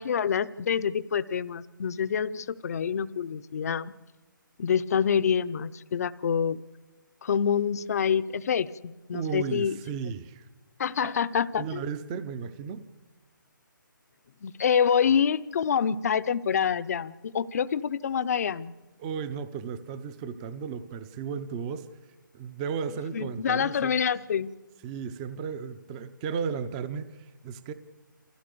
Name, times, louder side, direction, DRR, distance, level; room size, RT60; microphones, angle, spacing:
voice 1, 0.0-3.9 4.6-6.6 7.2-9.8 10.8-11.8 14.4-18.7 23.1-24.5, left 7 dB, 50° left, 14 dB, 0.6 m, -26 dB
voice 2, 9.1-10.5 11.0-11.1 11.6-12.8 19.0-21.9 22.3-23.9 24.8-27.7, right 6 dB, 20° right, 13 dB, 0.6 m, -34 dB
25.5 x 15.5 x 6.8 m, 1.2 s
hypercardioid pair, 160°, 11 cm